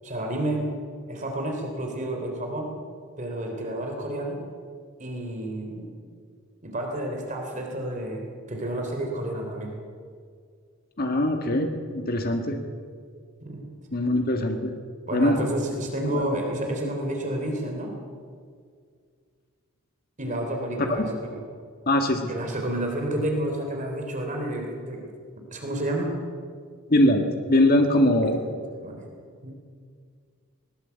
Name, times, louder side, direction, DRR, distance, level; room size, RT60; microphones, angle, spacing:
voice 1, 0.0-0.7 1.1-2.7 3.2-4.4 5.0-6.0 6.6-9.8 13.4-13.7 15.1-18.0 20.2-21.4 22.3-25.1 25.5-26.2 28.2-28.5 28.8-29.0 29.4-29.5, right 1 dB, 35° right, 1 dB, 3.5 m, -30 dB
voice 2, 11.0-12.6 13.9-14.8 15.1-15.4 16.1-16.2 21.9-22.3 26.9-27.2 27.5-28.4, left 1 dB, 45° left, 4 dB, 1.7 m, -22 dB
20.0 x 19.5 x 8.2 m, 2.1 s
head